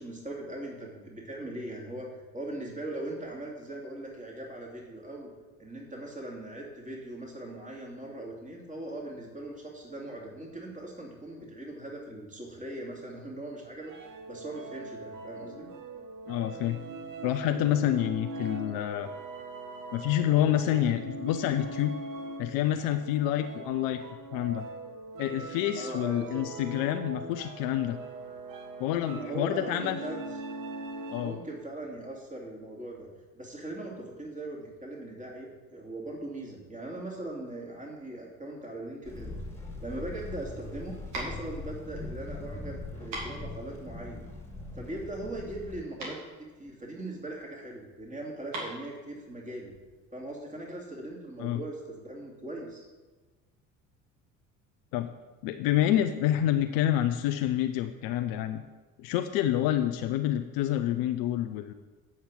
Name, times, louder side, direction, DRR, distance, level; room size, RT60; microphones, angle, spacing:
voice 1, 0.0-2.1 2.3-5.3 5.6-13.9 14.3-15.7 25.8-26.4 29.2-30.3 31.2-33.1 33.3-39.4 39.8-44.3 44.7-46.2 46.6-49.7 50.1-52.8, right 1 dB, 20° right, -1 dB, 2.8 m, -40 dB
sound 1, 13.8-31.5, right 3 dB, 50° right, 1.2 m, -41 dB
voice 2, 16.3-16.8 17.2-19.1 19.9-21.9 22.4-24.0 24.3-24.7 25.2-28.0 28.8-30.0 31.1-31.4 51.4-51.6 54.9-55.1 55.4-58.6 59.0-61.7, left 12 dB, 55° left, 9 dB, 0.7 m, -28 dB
sound 2, 39.0-45.8, left 2 dB, 5° left, 2.4 m, -41 dB
sound 3, 40.3-50.0, right 2 dB, 70° right, 2.7 m, -43 dB
8.4 x 5.7 x 7.8 m, 1.3 s
figure-of-eight pair, 55°, 42 cm